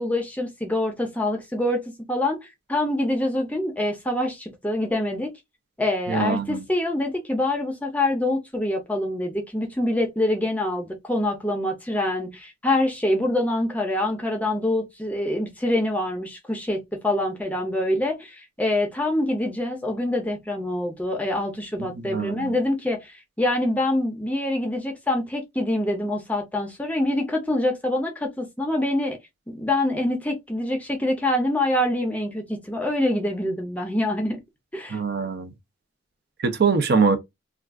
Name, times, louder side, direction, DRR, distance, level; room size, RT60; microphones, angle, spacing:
voice 1, 0.0-1.8 2.1-2.4 2.7-5.3 5.8-29.2 29.5-34.4 34.7-35.0, left 1 dB, 5° left, 0.5 m, -25 dB
voice 2, 6.1-6.6 21.8-22.5 34.9-35.5 36.4-37.2, right 5 dB, 55° right, 0.5 m, -23 dB
2.4 x 2.3 x 3.5 m
head